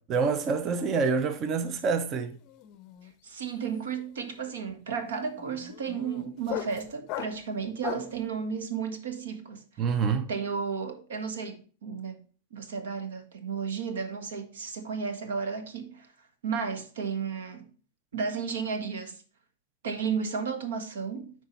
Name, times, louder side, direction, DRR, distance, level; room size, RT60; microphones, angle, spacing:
voice 1, 0.1-2.4 9.8-10.3, right 5 dB, 30° right, 0.6 m, -27 dB
sound 1, 1.4-1.7 2.0-8.2, left 14 dB, 40° left, 0.5 m, -40 dB
voice 2, 3.2-9.6 10.3-12.2 12.5-16.1 16.4-17.6 18.1-19.2 19.8-21.3, right 6 dB, 85° right, 1.5 m, -33 dB
8.5 x 4.7 x 4.0 m
supercardioid pair, 145°, 0 cm